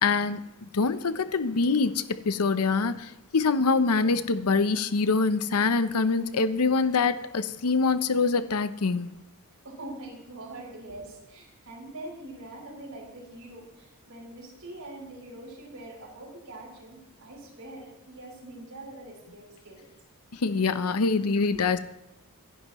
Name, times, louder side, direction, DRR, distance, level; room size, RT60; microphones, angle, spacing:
voice 1, 0.0-0.4 0.7-9.1 20.3-21.8, left 4 dB, 85° left, 0.7 m, -25 dB
voice 2, 9.6-19.9 20.3-20.4, right 1 dB, 75° right, 5.9 m, -43 dB
26.0 x 11.0 x 3.1 m
head